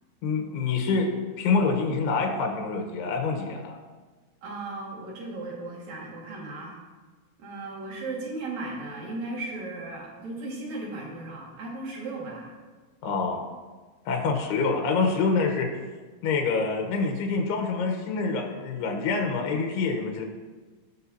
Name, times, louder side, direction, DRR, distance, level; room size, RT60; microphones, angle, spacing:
voice 1, 0.2-3.8 13.0-13.5 14.1-15.7 16.2-20.2, left 4 dB, 90° left, 3 dB, 3.1 m, -26 dB
voice 2, 4.4-6.7 7.4-12.5, right 2 dB, 50° right, -3 dB, 2.9 m, -36 dB
19.0 x 6.4 x 2.8 m, 1.4 s
omnidirectional pair, 4.6 m